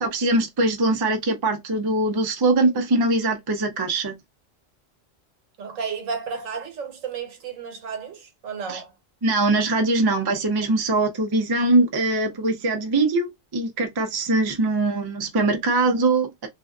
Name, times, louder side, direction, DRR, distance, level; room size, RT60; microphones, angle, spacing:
voice 1, 0.0-4.2 8.7-8.8 9.2-16.5, right 2 dB, 40° right, 0.3 m, -22 dB
voice 2, 5.6-8.9, right 6 dB, 90° right, 1.1 m, -32 dB
2.5 x 2.4 x 2.3 m
omnidirectional pair, 1.3 m